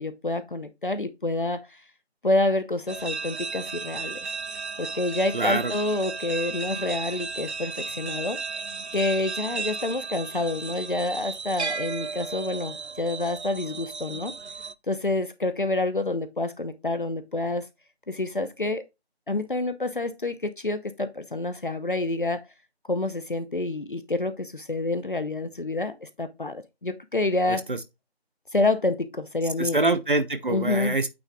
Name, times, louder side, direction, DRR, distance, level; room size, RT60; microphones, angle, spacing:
voice 1, 0.0-1.8 2.2-4.3 4.8-8.4 8.9-14.3 14.9-17.7 18.1-18.8 19.3-22.4 22.9-27.7 28.5-29.8 30.5-31.0, left 2 dB, 50° left, 0.9 m, -28 dB
sound 1, 2.9-14.7, right 4 dB, 90° right, 0.7 m, -34 dB
voice 2, 5.3-5.7 27.5-27.8 29.6-31.1, right 2 dB, 50° right, 0.9 m, -25 dB
8.8 x 3.5 x 4.6 m
figure-of-eight pair, 170°, 32 cm